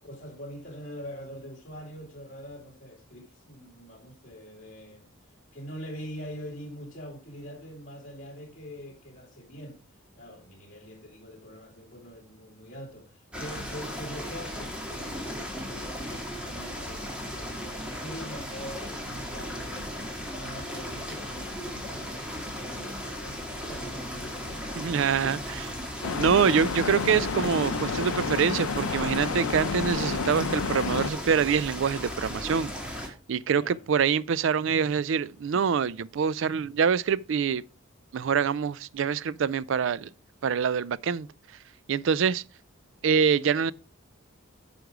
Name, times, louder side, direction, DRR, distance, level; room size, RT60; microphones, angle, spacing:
voice 1, 0.0-5.1 5.5-9.8 10.2-19.9 20.3-24.6 33.5-33.8, equal, 40° left, 2.1 m, -43 dB
sound 1, 13.3-33.1, equal, 5° right, 1.8 m, -36 dB
voice 2, 24.8-25.7 26.1-37.6 38.1-40.1 40.4-41.3 41.9-42.4 43.0-43.7, right 6 dB, 60° right, 0.3 m, -25 dB
sound 2, 26.0-31.1, left 5 dB, 90° left, 0.6 m, -30 dB
9.3 x 5.2 x 4.8 m
head